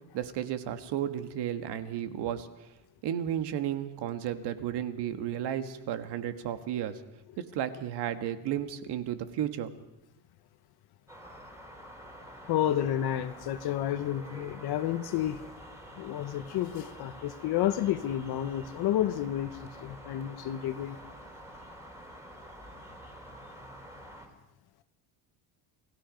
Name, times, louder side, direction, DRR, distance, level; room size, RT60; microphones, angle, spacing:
voice 1, 0.1-2.5 3.0-7.0 7.4-9.7, right 10 dB, 60° right, 9 dB, 1.7 m, -33 dB
sound 1, 11.1-24.3, equal, 5° right, 3.2 m, -48 dB
voice 2, 12.5-15.5 16.0-21.0, left 11 dB, 55° left, 10 dB, 1.1 m, -30 dB
28.5 x 18.0 x 5.2 m, 0.90 s
cardioid pair, 155°, 46 cm